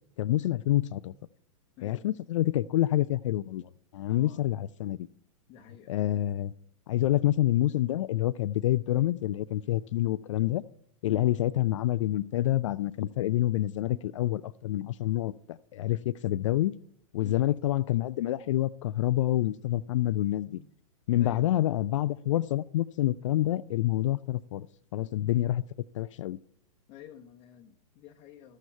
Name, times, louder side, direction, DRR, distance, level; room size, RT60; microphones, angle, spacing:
voice 1, 0.2-1.1 1.8-5.1 5.9-6.5 6.9-10.6 11.0-16.7 17.1-20.5 21.1-24.7 24.9-25.6 25.9-26.4, left 14 dB, 60° left, 15 dB, 0.4 m, -27 dB
voice 2, 4.1-4.4 5.5-6.2 11.1-11.3 17.2-17.4 20.5-20.7 21.2-21.5 26.9-28.6, left 9 dB, 30° left, 3 dB, 0.8 m, -50 dB
12.5 x 8.2 x 4.5 m, 0.66 s
hypercardioid pair, 120°, 18 cm